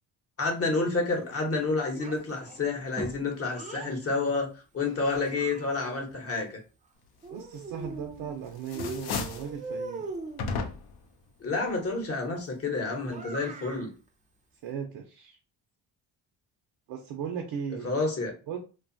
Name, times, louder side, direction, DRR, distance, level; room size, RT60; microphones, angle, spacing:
voice 1, 0.4-6.6 11.4-13.9 17.8-18.3, left 3 dB, 35° left, 0.9 m, -29 dB
Child speech kid speaking, 1.9-3.9 4.8-6.1 7.2-8.4 8.7-10.5 13.0-13.9, right 2 dB, 20° right, 0.4 m, -41 dB
voice 2, 7.3-10.0 14.6-15.3 16.9-17.9 18.5-18.6, right 7 dB, 75° right, 0.6 m, -37 dB
sound 1, 7.8-8.3 8.6-9.5 10.4-11.1, left 4 dB, 60° left, 0.5 m, -34 dB
2.6 x 2.3 x 2.5 m
cardioid pair, 105°, 44 cm